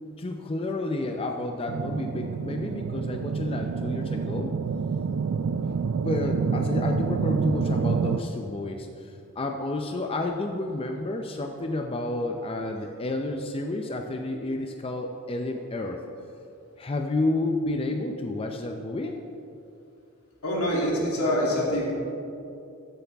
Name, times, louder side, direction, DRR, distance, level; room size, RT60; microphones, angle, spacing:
voice 1, 0.2-4.5 6.0-16.0 16.8-19.2, left 2 dB, 25° left, 3 dB, 0.5 m, -30 dB
sound 1, 1.7-8.2, right 5 dB, 65° right, 0.4 m, -28 dB
voice 2, 20.4-21.9, equal, 85° left, -4 dB, 2.7 m, -25 dB
15.0 x 8.1 x 3.5 m, 2.6 s
head